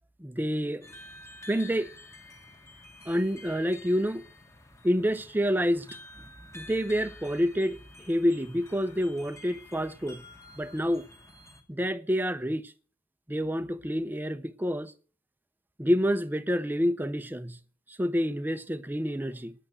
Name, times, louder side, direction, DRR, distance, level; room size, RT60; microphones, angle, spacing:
voice 1, 0.2-0.9 1.5-1.9 3.1-4.2 4.8-6.0 6.5-7.8 8.1-10.2 10.6-11.1 11.7-12.7 13.3-14.9 15.8-17.6 18.0-19.5, equal, 10° right, 0.6 m, -28 dB
sound 1, 0.8-11.6, left 2 dB, 15° left, 1.6 m, -50 dB
10.0 x 8.1 x 8.0 m
head